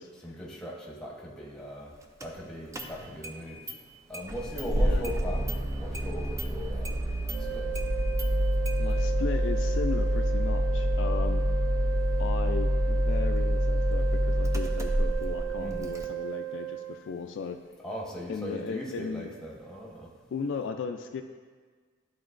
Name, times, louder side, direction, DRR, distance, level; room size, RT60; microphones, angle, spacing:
voice 1, 0.2-1.9 2.2-3.6 4.1-7.2 7.5-7.7 15.5-16.0 17.8-20.1, equal, 5° left, -3 dB, 1.0 m, -39 dB
Engine starting, 2.2-2.3 2.7-3.4 3.7-3.8 4.1-16.0, equal, 15° right, 0.4 m, -27 dB
voice 2, 4.7-5.1 8.8-11.4 12.2-17.6 18.3-19.3 20.3-21.2, left 5 dB, 65° left, 5 dB, 0.3 m, -36 dB
sound 1, 7.3-17.0, right 14 dB, 80° right, 0.5 m, -35 dB
11.5 x 3.9 x 2.5 m, 1.5 s
head